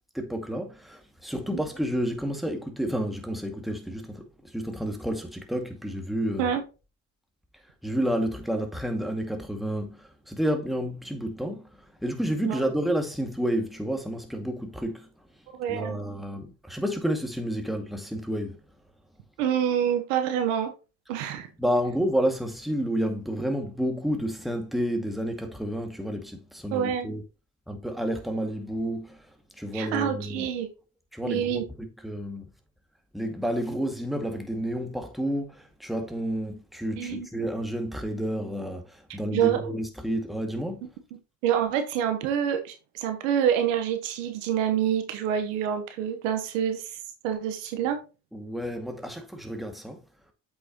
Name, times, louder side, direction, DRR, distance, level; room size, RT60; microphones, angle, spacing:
voice 1, 0.1-6.5 7.6-15.1 15.7-18.6 21.6-27.2 27.7-30.5 31.1-32.5 33.1-40.9 48.3-50.0, equal, ahead, 2.2 m, -30 dB
voice 2, 15.5-16.0 19.4-20.7 21.1-21.5 26.7-27.1 29.7-30.7 31.2-31.6 37.0-37.3 39.3-39.6 41.4-46.8 47.2-48.0, right 9 dB, 85° right, 1.2 m, -26 dB
7.9 x 6.3 x 3.0 m
hypercardioid pair, 55°, 37 cm